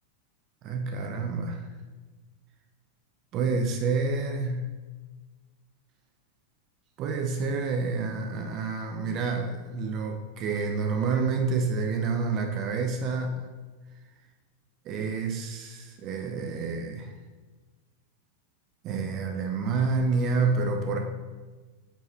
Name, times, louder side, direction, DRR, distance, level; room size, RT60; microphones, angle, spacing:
voice 1, 0.6-1.7 3.3-4.7 7.0-13.5 14.8-17.1 18.8-21.0, right 4 dB, 35° right, 3 dB, 0.7 m, -28 dB
9.0 x 4.8 x 2.9 m, 1.3 s
figure-of-eight pair, 90°, 0 cm